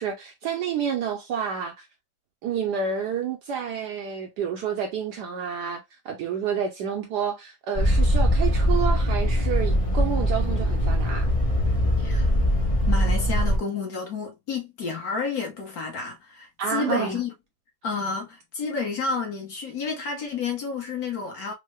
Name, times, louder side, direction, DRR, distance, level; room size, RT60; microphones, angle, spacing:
voice 1, 0.0-1.9 2.4-11.3 16.6-17.2, right 7 dB, 70° right, 1.0 m, -29 dB
sound 1, 7.8-13.6, equal, 40° left, 0.4 m, -22 dB
voice 2, 12.0-12.3 12.9-17.3 17.8-21.5, left 5 dB, 55° left, 1.2 m, -30 dB
3.6 x 2.1 x 3.0 m
omnidirectional pair, 2.2 m